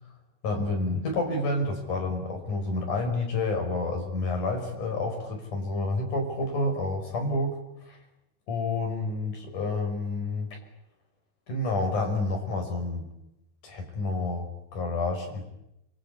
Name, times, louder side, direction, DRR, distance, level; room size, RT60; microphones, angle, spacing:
voice 1, 0.4-7.6 7.9-8.0 8.5-10.6 11.5-13.1 13.6-15.4, left 2 dB, 50° left, 3 dB, 7.0 m, -29 dB
27.0 x 23.5 x 8.5 m, 0.86 s
omnidirectional pair, 4.8 m